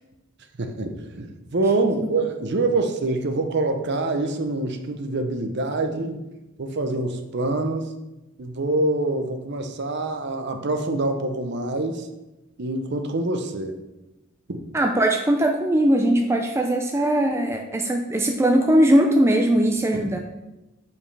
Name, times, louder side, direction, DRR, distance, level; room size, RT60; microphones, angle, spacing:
voice 1, 0.6-6.3 6.6-7.9 8.4-12.1 12.6-13.8 14.5-14.6 19.9-20.0, right 2 dB, 50° right, 6 dB, 0.6 m, -25 dB
voice 2, 14.7-20.2, right 1 dB, 10° right, 2 dB, 0.4 m, -20 dB
7.1 x 5.3 x 3.3 m, 1.0 s
head